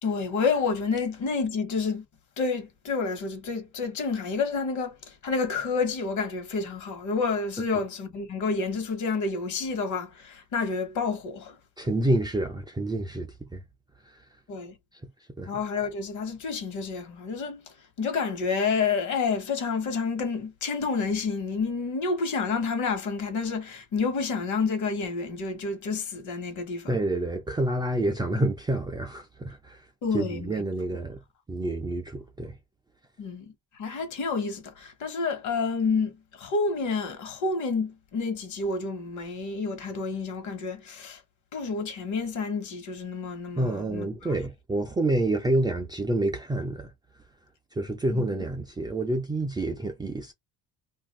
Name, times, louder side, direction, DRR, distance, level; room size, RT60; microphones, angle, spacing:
voice 1, 0.0-2.0 2.4-11.5 14.5-14.7 15.5-17.6 18.0-26.9 30.0-30.5 33.2-33.5 33.8-41.2 41.5-44.3 48.1-48.3, left 4 dB, 55° left, 1.2 m, -29 dB
voice 2, 11.8-13.6 14.0-14.2 15.0-15.1 15.4-15.5 26.9-29.9 30.1-31.2 31.5-32.6 43.6-46.9 47.7-50.3, right 1 dB, 15° right, 0.4 m, -28 dB
2.5 x 2.3 x 3.2 m
cardioid pair, 135°, 34 cm